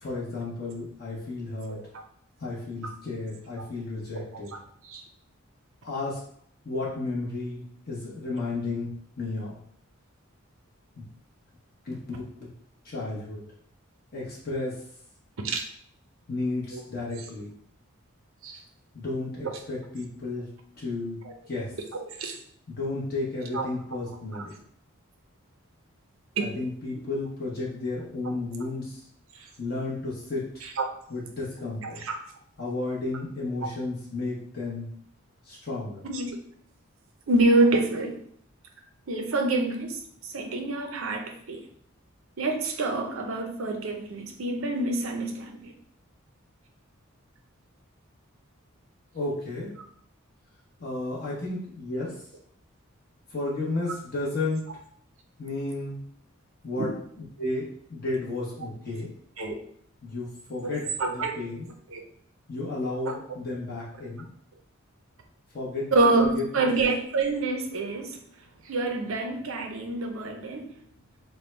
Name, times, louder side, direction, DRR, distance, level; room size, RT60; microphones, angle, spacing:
voice 1, 0.0-1.8 2.4-4.5 5.8-6.2 6.6-8.9 9.2-9.6 11.8-12.5 12.8-13.4 14.1-14.8 16.3-17.5 18.9-20.5 20.8-21.2 21.5-21.7 22.7-24.6 26.4-29.0 29.6-30.4 31.1-32.0 32.6-34.9 35.4-36.0 49.1-49.7 50.8-52.2 53.3-54.6 55.4-56.0 56.6-56.9 57.4-59.1 60.0-61.7 62.5-64.3 65.5-66.7, left 2 dB, 45° left, -6 dB, 1.0 m, -33 dB
voice 2, 4.1-4.6 4.8-5.0 15.4-15.6 18.4-18.6 21.9-22.4 23.5-23.7 26.4-26.5 30.8-30.9 32.0-32.2 36.0-36.4 37.3-38.2 39.1-41.6 42.4-45.7 56.8-56.9 59.4-59.6 60.6-60.7 61.0-61.3 61.9-62.0 63.0-63.2 65.9-68.2 68.6-70.7, right 2 dB, 75° right, 4 dB, 0.6 m, -27 dB
3.5 x 2.2 x 4.3 m, 0.63 s
head